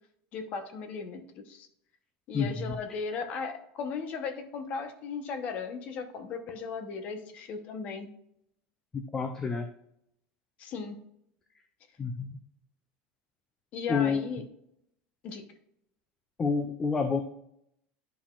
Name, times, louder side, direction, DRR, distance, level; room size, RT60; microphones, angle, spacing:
voice 1, 0.3-1.2 1.5-1.7 2.3-8.1 10.6-11.0 13.7-14.4 15.2-15.5, left 5 dB, 35° left, 7 dB, 0.9 m, -36 dB
voice 2, 2.3-2.7 8.9-9.7 12.0-12.4 13.9-14.3 16.4-17.2, left 5 dB, 15° left, 7 dB, 0.4 m, -29 dB
10.5 x 5.7 x 2.4 m, 0.76 s
cardioid pair, 175°, 4 cm